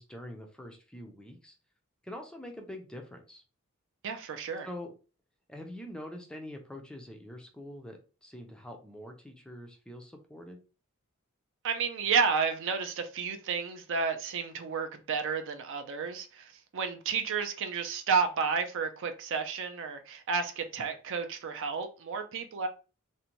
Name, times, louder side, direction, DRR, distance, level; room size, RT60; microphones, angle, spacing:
voice 1, 0.0-1.5 2.0-3.4 4.6-4.9 5.5-10.6, left 1 dB, 5° left, 0.4 m, -44 dB
voice 2, 4.0-4.7 11.6-22.7, right 5 dB, 60° right, 0.4 m, -31 dB
2.5 x 2.1 x 2.9 m
head